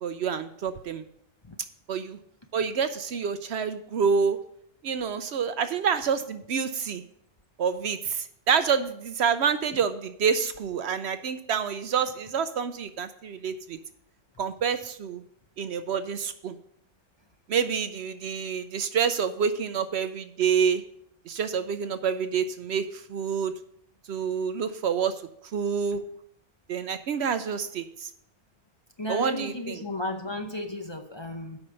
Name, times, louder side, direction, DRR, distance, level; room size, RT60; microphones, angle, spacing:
voice 1, 0.0-1.0 1.9-2.2 2.5-4.4 4.8-7.0 7.6-13.8 14.4-15.2 15.6-16.6 17.5-20.8 21.3-23.5 24.1-25.1 25.5-26.0 26.7-28.1 29.1-29.8, right 6 dB, 65° right, 10 dB, 0.8 m, -27 dB
voice 2, 29.0-31.6, left 1 dB, 25° left, 3 dB, 0.7 m, -34 dB
8.3 x 5.5 x 6.8 m, 0.69 s
omnidirectional pair, 1.3 m